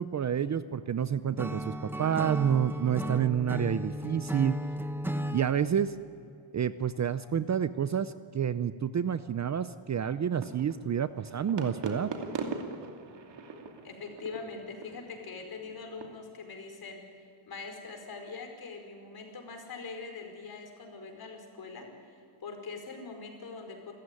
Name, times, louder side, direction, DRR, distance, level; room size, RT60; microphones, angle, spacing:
voice 1, 0.0-4.6 5.3-5.9 6.5-12.1, right 8 dB, 35° right, 13 dB, 0.6 m, -29 dB
Acoustic guitar / Strum, 1.4-5.5, equal, 5° right, 0.9 m, -35 dB
sound 1, 10.3-16.0, right 4 dB, 60° right, 2.7 m, -41 dB
voice 2, 13.8-21.9 22.4-23.9, left 4 dB, 45° left, 4 dB, 5.0 m, -43 dB
29.0 x 14.5 x 9.8 m, 2.6 s
cardioid pair, 145°, 48 cm